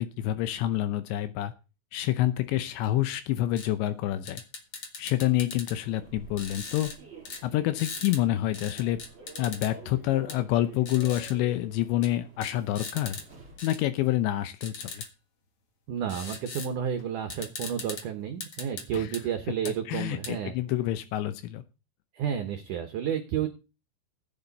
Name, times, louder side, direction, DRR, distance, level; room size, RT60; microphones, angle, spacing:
voice 1, 0.0-1.5 1.9-4.4 5.0-6.9 7.4-9.0 9.4-13.2 13.6-15.0 18.9-19.1 19.9-21.6, left 14 dB, 85° left, 11 dB, 3.0 m, -27 dB
sound 1, 3.6-3.7 4.3-5.8 6.4-7.0 7.3-7.4 7.8-8.2 8.5-9.7 10.3-10.4 10.9-11.3 12.0-12.1 12.4-13.2 13.6-13.8 14.6-15.1 16.1-16.7 17.0-17.1 17.3-18.0 18.4-19.2 19.7-19.8 20.2-20.3, left 4 dB, 60° left, 1.4 m, -39 dB
Human voice / Subway metro underground, 5.8-13.7, right 2 dB, 20° right, 2.9 m, -50 dB
voice 2, 15.9-20.5 22.1-23.5, right 9 dB, 75° right, 7 dB, 1.9 m, -31 dB
15.0 x 9.0 x 4.1 m, 0.31 s
omnidirectional pair, 5.2 m